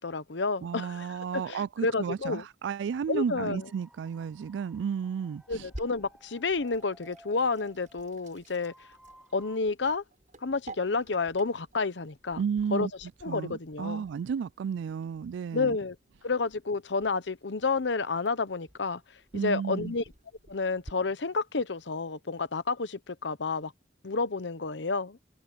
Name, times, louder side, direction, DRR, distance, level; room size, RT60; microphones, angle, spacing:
voice 1, 0.0-2.4 3.1-3.7 5.5-8.7 9.3-10.0 10.4-12.4 12.7-12.9 13.2-14.0 15.5-16.0 16.2-19.0 19.3-20.0 20.5-23.7 24.0-25.2, left 4 dB, 80° left, 0.9 m, -30 dB
voice 2, 0.6-5.6 12.4-12.9 13.3-15.8 19.3-19.9, right 7 dB, 80° right, 0.3 m, -33 dB
sound 1, 3.3-9.6, right 1 dB, 5° right, 2.4 m, -57 dB
Sink (filling or washing), 5.5-20.9, right 1 dB, 45° right, 8.0 m, -52 dB
head